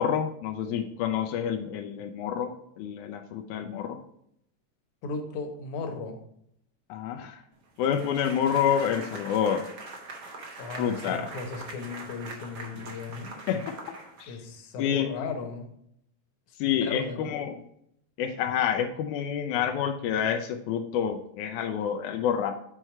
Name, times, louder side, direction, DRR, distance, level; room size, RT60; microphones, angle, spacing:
voice 1, 0.0-4.0 6.9-7.4 7.8-9.7 10.8-11.3 13.5-13.7 14.2-14.4 14.8-15.1 16.6-17.6 18.2-22.5, left 8 dB, 90° left, 4 dB, 2.1 m, -28 dB
voice 2, 5.0-6.2 10.6-13.4 14.3-15.7 16.8-17.3, left 4 dB, 75° left, 5 dB, 2.5 m, -36 dB
sound 1, 7.8-14.6, right 3 dB, 70° right, 0.9 m, -43 dB
6.3 x 4.5 x 5.8 m, 0.74 s
omnidirectional pair, 3.5 m